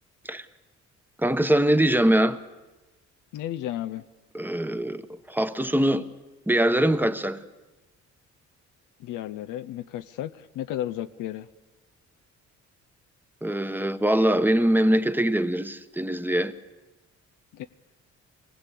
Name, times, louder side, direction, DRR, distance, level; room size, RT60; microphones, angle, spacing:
voice 1, 1.2-2.4 4.3-5.0 5.3-6.0 6.5-7.4 13.4-16.5, right 1 dB, 5° right, 1.1 m, -22 dB
voice 2, 3.3-4.0 9.0-11.5 17.5-17.6, left 12 dB, 90° left, 0.7 m, -33 dB
24.5 x 20.0 x 8.4 m
cardioid pair, 90°, 30 cm